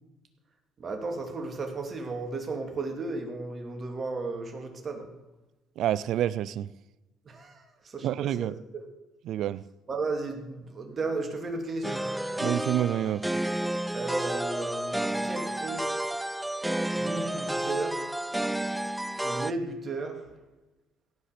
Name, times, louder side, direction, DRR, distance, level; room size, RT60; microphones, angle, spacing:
voice 1, 0.8-5.1 7.3-8.5 8.7-8.8 9.9-12.0 13.9-15.9 16.9-18.0 19.2-20.2, right 3 dB, 40° right, 4 dB, 2.8 m, -34 dB
voice 2, 5.8-6.7 8.0-8.5 9.3-9.6 12.4-13.2, right 11 dB, 70° right, 19 dB, 0.4 m, -28 dB
sound 1, 11.8-19.5, right 1 dB, 5° right, 0.4 m, -31 dB
17.0 x 5.8 x 6.8 m, 1.1 s
supercardioid pair, 75°, 0 cm